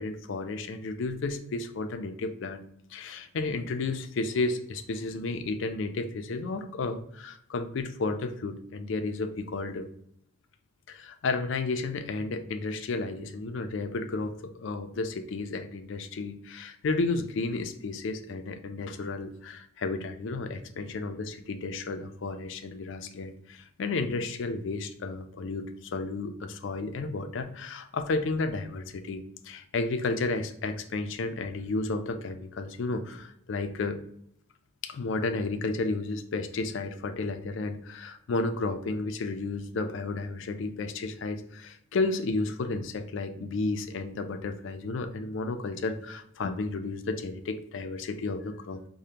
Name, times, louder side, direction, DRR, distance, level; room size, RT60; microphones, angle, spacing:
voice 1, 0.0-2.6 2.9-9.9 10.9-34.0 34.8-48.8, left 3 dB, 60° left, 8 dB, 0.4 m, -32 dB
4.9 x 2.1 x 2.8 m, 0.70 s
head